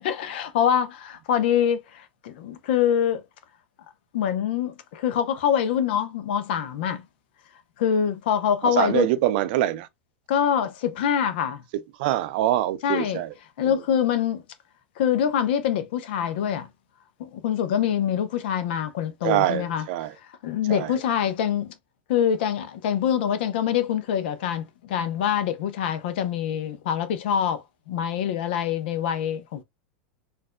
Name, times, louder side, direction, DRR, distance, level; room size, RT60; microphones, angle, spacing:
voice 1, 0.0-3.2 4.1-7.0 7.8-9.1 10.3-11.6 12.8-13.2 13.6-14.4 15.0-16.7 17.2-19.9 20.4-21.7 22.1-29.6, left 9 dB, 70° left, 0.8 m, -25 dB
voice 2, 8.6-9.9 12.0-13.3 19.2-20.1 20.7-20.9, right 14 dB, 65° right, 0.5 m, -24 dB
4.2 x 2.6 x 2.3 m
hypercardioid pair, 110°, 6 cm